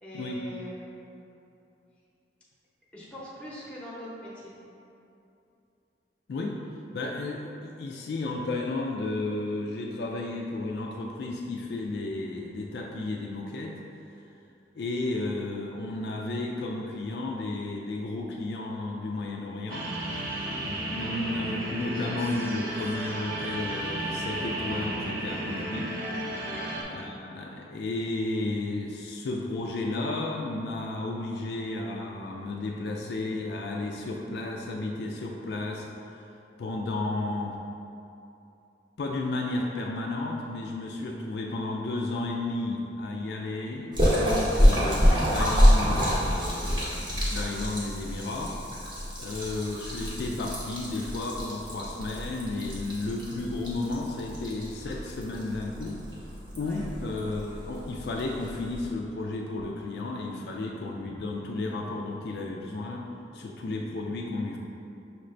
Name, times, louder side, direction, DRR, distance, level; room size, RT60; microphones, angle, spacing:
voice 1, 0.0-1.4 2.9-4.5 26.4-26.7 56.6-56.8, equal, 5° left, -7 dB, 0.8 m, -42 dB
voice 2, 6.9-13.7 14.8-19.9 20.5-26.0 26.9-35.9 36.6-37.6 39.0-48.6 49.2-56.0 56.6-63.0 63.3-64.6, left 2 dB, 60° left, 0 dB, 0.3 m, -33 dB
sound 1, 19.7-26.8, right 1 dB, 50° right, 0.5 m, -33 dB
Splash splatter, 43.9-58.9, equal, 25° right, 0.7 m, -27 dB
5.7 x 2.6 x 3.1 m, 2.7 s
head